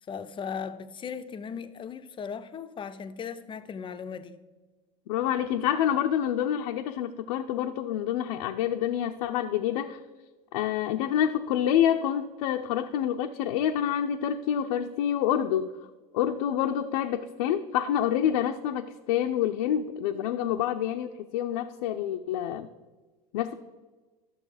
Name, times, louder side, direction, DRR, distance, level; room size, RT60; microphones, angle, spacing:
voice 1, 0.1-4.4, left 6 dB, 25° left, 0.6 m, -37 dB
voice 2, 5.1-10.0 10.5-15.7 16.1-22.7 23.3-23.5, left 10 dB, 75° left, 0.6 m, -27 dB
11.0 x 6.7 x 4.9 m
hypercardioid pair, 100°, 19 cm